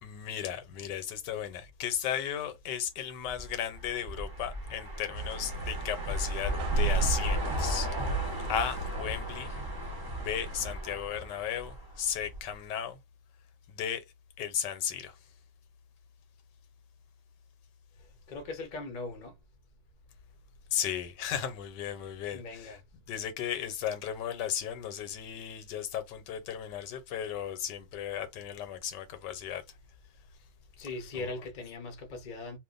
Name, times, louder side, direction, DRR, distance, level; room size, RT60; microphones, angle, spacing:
voice 1, 0.0-7.9 8.2-9.6 10.2-13.0 13.7-14.0 14.4-15.2 20.7-22.8 23.1-29.6 31.1-31.3, left 9 dB, 85° left, 1.3 m, -35 dB
sound 1, 3.3-12.5, right 1 dB, 25° right, 0.4 m, -36 dB
sound 2, 5.2-10.7, right 3 dB, 70° right, 1.0 m, -34 dB
voice 2, 18.3-19.3 22.3-22.8 30.8-32.6, left 3 dB, 40° left, 0.6 m, -39 dB
2.6 x 2.5 x 3.8 m
omnidirectional pair, 1.8 m